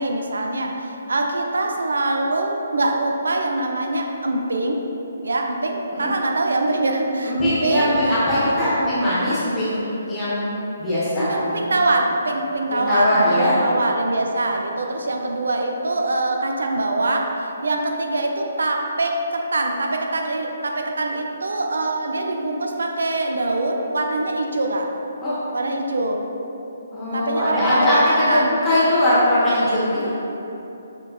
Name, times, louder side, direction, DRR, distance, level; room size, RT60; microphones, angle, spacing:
voice 1, 0.0-4.8 5.2-8.1 11.2-24.9 25.5-26.2 27.1-28.5, right 2 dB, 65° right, 2 dB, 0.5 m, -24 dB
voice 2, 7.3-9.8 10.1-10.5 10.8-11.6 12.7-13.6 25.2-25.4 26.9-30.1, left 1 dB, 15° left, -12 dB, 1.1 m, -20 dB
5.8 x 3.7 x 2.3 m, 3.0 s
figure-of-eight pair, 135°, 0 cm